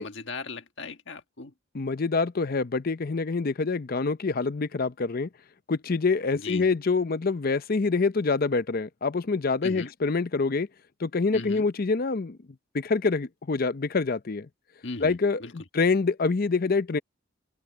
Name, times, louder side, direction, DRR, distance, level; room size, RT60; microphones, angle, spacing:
voice 1, 0.0-1.5 6.3-6.7 9.6-9.9 11.3-11.7 14.8-15.5, left 3 dB, 60° left, 1.7 m, -38 dB
voice 2, 1.7-5.3 5.7-10.7 11.0-12.4 12.7-14.5 15.0-17.0, left 4 dB, 45° left, 0.6 m, -26 dB
head